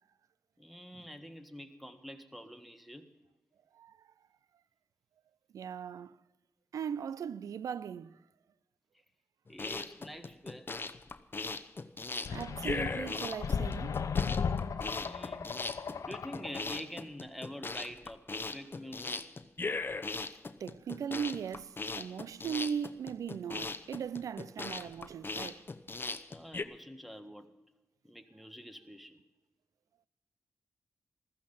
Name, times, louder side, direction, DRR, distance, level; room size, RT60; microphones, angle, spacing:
voice 1, 0.6-3.1 9.5-10.7 15.0-15.8 16.0-19.2 26.3-27.5 28.0-29.2, equal, ahead, 1.6 m, -46 dB
voice 2, 5.5-6.2 6.7-8.2 12.3-14.0 20.6-25.6, right 7 dB, 85° right, 0.4 m, -38 dB
sound 1, 9.5-26.6, left 3 dB, 40° left, 0.8 m, -39 dB
sound 2, 12.3-16.8, left 6 dB, 75° left, 0.7 m, -35 dB
15.0 x 14.0 x 5.5 m
cardioid pair, 45°, 6 cm